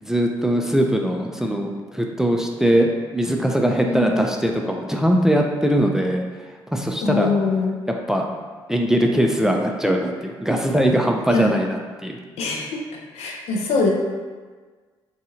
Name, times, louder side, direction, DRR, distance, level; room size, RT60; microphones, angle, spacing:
voice 1, 0.0-7.3 8.1-8.2 8.7-12.2, equal, 5° right, 2 dB, 0.3 m, -21 dB
voice 2, 3.8-4.3 7.0-7.7 11.3-11.5 12.4-12.8 13.1-13.9, left 4 dB, 70° left, 0 dB, 0.4 m, -23 dB
2.6 x 2.3 x 2.8 m, 1.4 s
hypercardioid pair, 50°, 11 cm